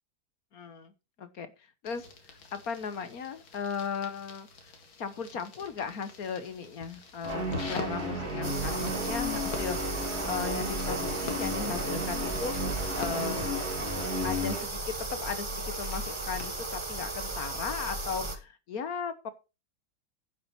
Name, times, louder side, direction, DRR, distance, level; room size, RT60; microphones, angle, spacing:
voice 1, 0.5-0.9 1.2-1.5 1.8-2.0 2.5-4.5 5.0-13.7 14.2-19.3, left 6 dB, 50° left, 11 dB, 1.4 m, -36 dB
sound 1, 1.9-16.5, left 4 dB, 75° left, 2.7 m, -46 dB
Guitar, 7.2-14.7, equal, 40° right, 4.7 m, -33 dB
sound 2, 8.4-18.4, right 2 dB, 20° right, 0.9 m, -36 dB
11.0 x 7.6 x 4.2 m, 0.29 s
omnidirectional pair, 2.2 m